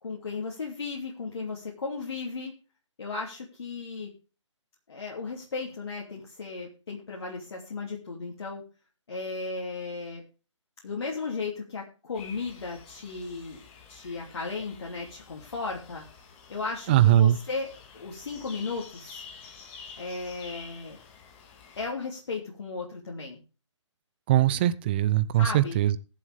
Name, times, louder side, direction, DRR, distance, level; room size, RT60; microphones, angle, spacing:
voice 1, 0.0-2.5 3.0-4.1 4.9-8.6 9.1-10.2 10.8-13.6 13.9-16.0 16.5-19.2 20.0-21.0 21.8-23.4 25.3-25.8, left 4 dB, 55° left, -2 dB, 3.0 m, -35 dB
sound 1, 12.1-21.9, left 5 dB, 20° left, 2.1 m, -49 dB
voice 2, 16.9-17.4 24.3-26.0, right 12 dB, 20° right, 16 dB, 0.5 m, -21 dB
21.5 x 7.5 x 3.6 m, 0.34 s
figure-of-eight pair, 145°, 16 cm